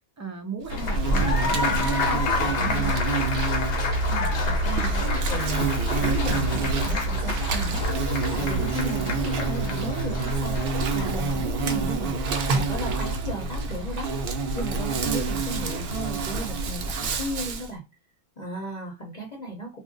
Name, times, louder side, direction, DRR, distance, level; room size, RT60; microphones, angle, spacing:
voice 1, 0.2-2.9 11.6-11.9, right 3 dB, 25° right, 4 dB, 0.4 m, -35 dB
Insect, 0.6-17.7, right 3 dB, 60° right, 0.7 m, -26 dB
Applause, 0.7-11.1, left 4 dB, 75° left, 1.0 m, -31 dB
voice 2, 4.1-7.9 8.3-10.6 10.9-12.1 12.5-17.8 18.4-19.8, right 2 dB, 40° left, -1 dB, 0.9 m, -35 dB
2.6 x 2.2 x 3.7 m, 0.24 s
omnidirectional pair, 1.2 m